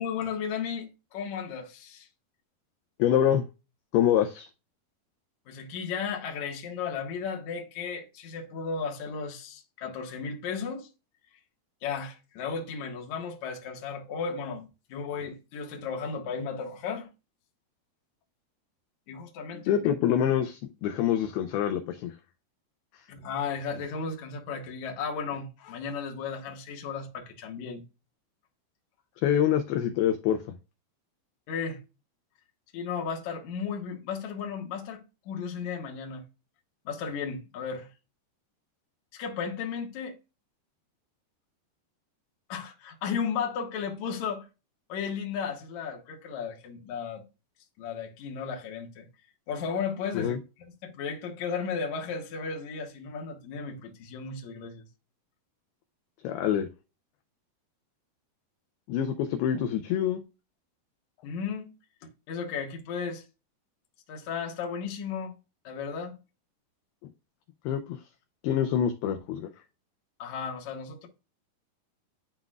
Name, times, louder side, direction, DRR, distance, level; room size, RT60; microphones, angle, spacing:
voice 1, 0.0-2.1 5.5-10.9 11.8-17.1 19.1-19.9 23.1-27.8 31.5-31.8 32.7-36.3 36.9-37.9 39.1-40.2 42.5-44.5 44.9-47.2 47.8-49.1 49.5-50.4 50.8-54.9 61.2-61.7 62.3-63.2 64.1-65.3 65.6-66.2 70.2-71.1, left 6 dB, 60° left, 2.2 m, -34 dB
voice 2, 3.0-3.4 3.9-4.5 19.7-22.2 29.2-30.6 50.1-50.4 56.2-56.7 58.9-60.2 67.7-68.0 68.4-69.5, left 10 dB, 80° left, 2.3 m, -26 dB
12.0 x 4.0 x 2.4 m
omnidirectional pair, 5.1 m